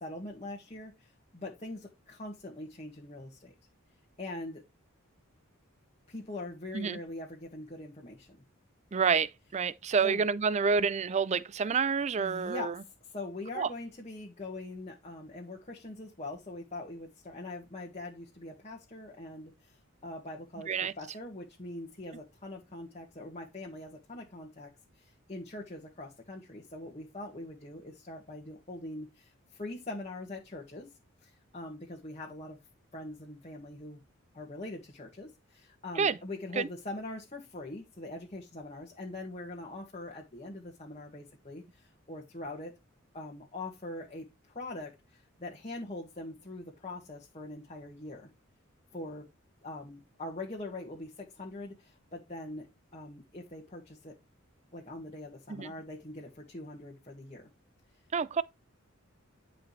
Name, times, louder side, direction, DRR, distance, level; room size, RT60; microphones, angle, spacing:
voice 1, 0.0-3.6 4.2-4.6 6.1-8.3 10.0-10.2 12.2-12.7 13.0-19.7 20.0-24.7 25.0-30.9 31.2-32.6 32.9-34.0 34.3-42.7 43.1-48.3 48.9-49.3 49.6-52.7 52.9-54.2 54.7-57.5, left 2 dB, 30° left, 1.7 m, -43 dB
voice 2, 8.9-12.7 13.6-13.7 20.7-20.9 36.0-36.2 36.6-36.7 55.5-55.7 58.1-58.4, right 5 dB, 30° right, 0.4 m, -28 dB
11.0 x 5.1 x 3.2 m
head